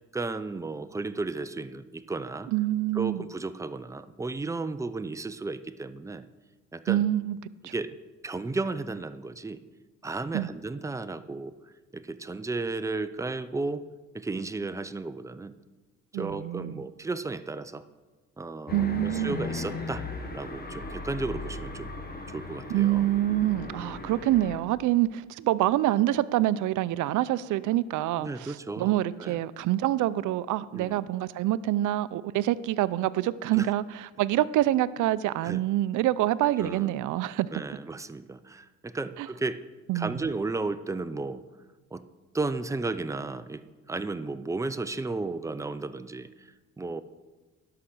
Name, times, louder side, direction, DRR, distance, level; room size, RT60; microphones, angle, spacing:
voice 1, 0.1-2.5 2.9-6.2 6.7-7.0 7.7-7.9 8.2-9.6 10.0-11.5 11.9-13.8 14.1-15.5 16.1-17.8 18.4-20.1 20.3-21.9 22.3-23.0 28.2-29.4 30.7-31.1 33.5-33.7 35.4-35.6 36.6-37.0 37.5-39.6 39.9-41.4 41.9-42.0 42.3-43.6 43.9-47.0, right 3 dB, 10° right, 11 dB, 0.5 m, -34 dB
voice 2, 2.5-3.2 6.9-7.4 7.6-7.7 10.3-10.5 16.1-16.8 18.7-19.4 22.7-37.5 39.2-39.3 39.9-40.3, right 14 dB, 80° right, 17 dB, 0.5 m, -26 dB
sound 1, 18.7-24.6, left 3 dB, 30° left, 1.4 m, -37 dB
11.5 x 5.8 x 6.5 m, 1.2 s
cardioid pair, 90°, 30 cm